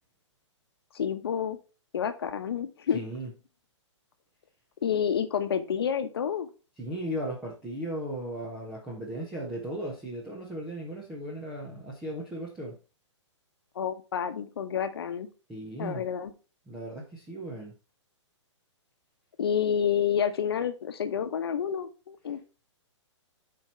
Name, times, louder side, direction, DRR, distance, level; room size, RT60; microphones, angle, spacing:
voice 1, 0.9-1.6 1.9-3.0 4.8-6.5 13.7-15.3 15.8-16.3 19.4-22.4, left 8 dB, 50° left, 9 dB, 1.0 m, -29 dB
voice 2, 2.9-3.3 6.8-12.8 15.5-16.0 16.7-17.7, right 1 dB, 5° right, -4 dB, 0.7 m, -36 dB
7.4 x 4.5 x 4.4 m, 0.33 s
hypercardioid pair, 175°, 16 cm